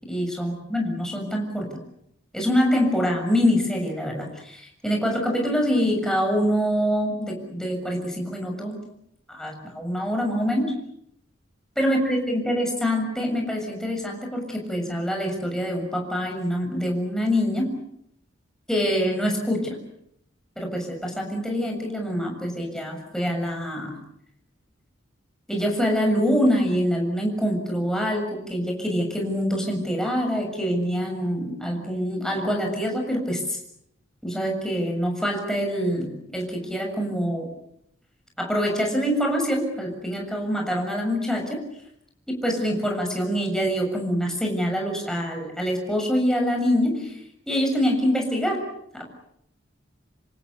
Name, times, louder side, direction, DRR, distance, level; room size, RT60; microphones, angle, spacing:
voice 1, 0.0-1.8 2.3-8.8 9.3-10.8 11.8-17.8 18.7-19.8 20.6-24.0 25.5-33.6 34.2-37.5 38.4-41.6 42.3-48.6 48.9-49.0, equal, 5° left, 1 dB, 6.9 m, -25 dB
27.0 x 27.0 x 6.9 m, 0.74 s
head